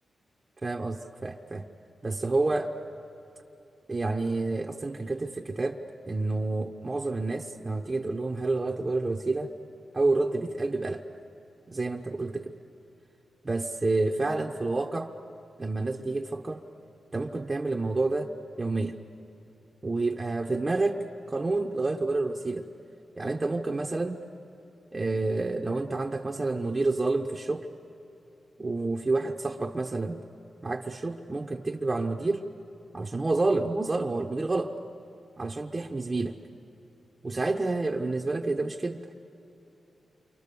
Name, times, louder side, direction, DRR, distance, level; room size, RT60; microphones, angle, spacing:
voice 1, 0.6-1.7 2.0-2.7 3.9-5.8 6.1-9.5 9.9-11.0 11.7-12.5 13.4-15.1 15.6-16.6 17.1-18.3 18.6-19.0 19.8-22.7 23.2-24.2 24.9-27.7 28.6-30.2 30.6-32.4 32.9-34.7 35.4-36.4 37.2-39.1, right 3 dB, 25° right, 2 dB, 0.9 m, -29 dB
28.5 x 25.0 x 6.8 m, 3.0 s
cardioid pair, 85°, 0 cm